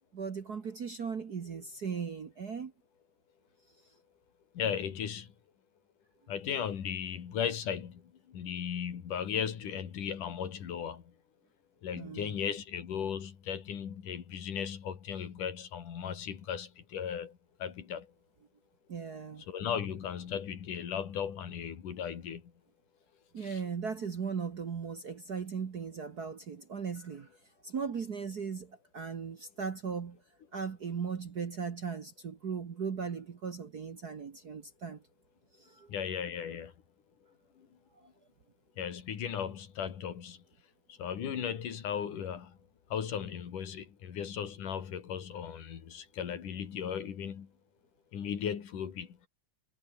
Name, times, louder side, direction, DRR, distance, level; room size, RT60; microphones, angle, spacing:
voice 1, 0.1-2.7 11.9-12.5 18.9-19.4 23.3-27.3 27.6-30.2 30.5-35.0 35.6-35.9, right 6 dB, 55° right, 1.1 m, -38 dB
voice 2, 4.5-5.3 6.3-11.1 11.8-18.1 19.5-22.5 23.4-23.6 35.9-36.7 37.6-37.7 38.8-40.4 40.9-42.6 42.9-47.5 48.1-49.3, left 8 dB, 70° left, 4.0 m, -36 dB
omnidirectional pair, 3.9 m